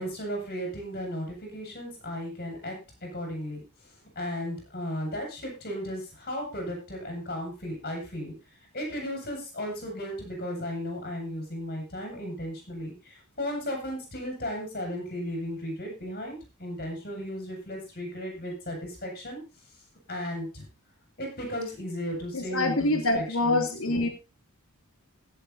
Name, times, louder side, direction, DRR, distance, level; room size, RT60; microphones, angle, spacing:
voice 1, 0.0-2.8 3.0-3.6 4.2-8.3 8.7-19.4 20.1-20.6 21.2-24.1, equal, 40° left, 1 dB, 6.8 m, -35 dB
voice 2, 22.3-24.1, left 2 dB, 65° left, 5 dB, 2.6 m, -25 dB
16.5 x 7.7 x 4.2 m, 0.30 s
head